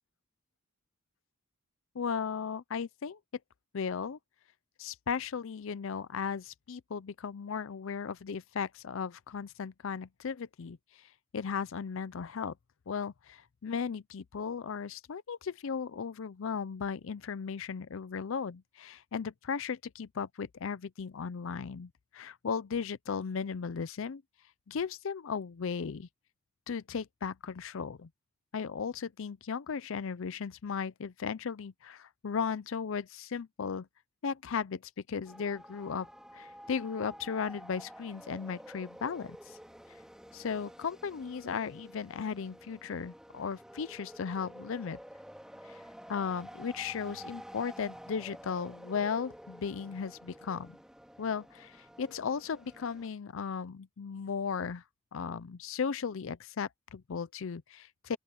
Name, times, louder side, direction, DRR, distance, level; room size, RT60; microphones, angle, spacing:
voice 1, 1.9-3.2 3.7-4.2 4.8-10.8 11.3-12.5 12.9-24.2 24.7-26.1 26.7-28.1 28.5-33.9 34.2-34.8 35.1-36.1 36.3-39.6 40.3-45.0 45.6-45.8 46.1-50.8 51.2-54.8 55.1-58.2, left 6 dB, 65° left, 0.5 m, -36 dB
sound 1, 35.3-53.1, equal, 5° right, 2.6 m, -50 dB
open air
head